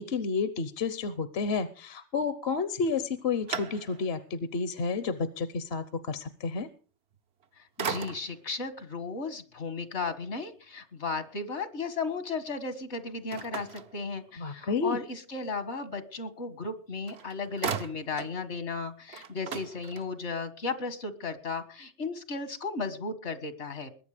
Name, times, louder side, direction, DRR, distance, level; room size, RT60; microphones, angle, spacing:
voice 1, 0.0-6.7 14.4-15.0, left 4 dB, 65° left, 13 dB, 1.1 m, -31 dB
sound 1, 2.8-4.3 4.8-4.9 7.1-7.5 7.8-8.5 13.3-14.6 16.7-16.8 17.1-18.4 18.7-18.8 19.1-20.4, right 6 dB, 70° right, 1.2 m, -38 dB
voice 2, 7.6-23.9, left 4 dB, 80° left, 11 dB, 2.1 m, -35 dB
21.0 x 9.4 x 5.0 m, 0.39 s
omnidirectional pair, 1.1 m